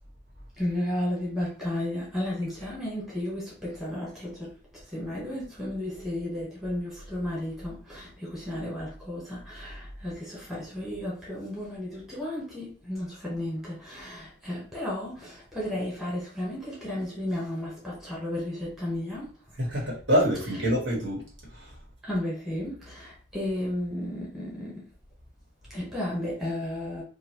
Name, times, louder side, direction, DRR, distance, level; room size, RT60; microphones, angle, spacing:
voice 1, 0.6-19.3 22.0-24.8 25.7-27.0, left 1 dB, ahead, 1.2 m, -33 dB
voice 2, 19.5-21.8, equal, 85° right, 1.5 m, -27 dB
3.0 x 2.4 x 3.0 m
head